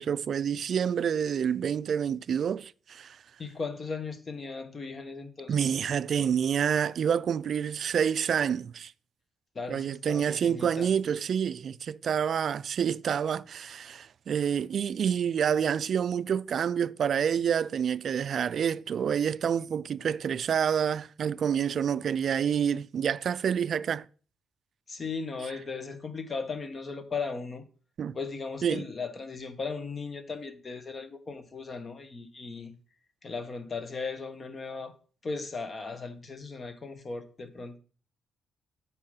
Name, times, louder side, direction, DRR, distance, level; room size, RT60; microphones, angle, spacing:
voice 1, 0.0-3.2 5.5-8.9 9.7-24.0 28.0-28.2 28.6-28.8, right 8 dB, 55° right, 0.3 m, -28 dB
voice 2, 3.4-5.7 9.5-10.9 24.9-27.7 28.1-32.8 33.2-34.9 35.2-37.8, left 4 dB, 35° left, 1.1 m, -37 dB
8.3 x 4.7 x 5.3 m
cardioid pair, 90°, 0 cm